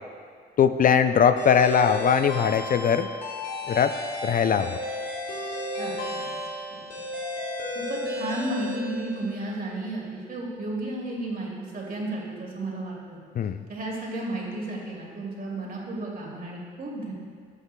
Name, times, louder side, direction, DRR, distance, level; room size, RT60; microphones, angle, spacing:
voice 1, 0.6-3.1 3.7-3.9 4.2-4.8 13.4-13.6, left 7 dB, 45° left, 9 dB, 0.4 m, -20 dB
sound 1, 1.4-9.5, left 1 dB, 70° left, 2.4 m, -34 dB
voice 2, 5.8-6.3 6.7-6.8 7.7-13.2 13.7-17.1, right 1 dB, 45° right, -3 dB, 2.5 m, -33 dB
15.0 x 8.1 x 2.2 m, 2.1 s
cardioid pair, 90°, 20 cm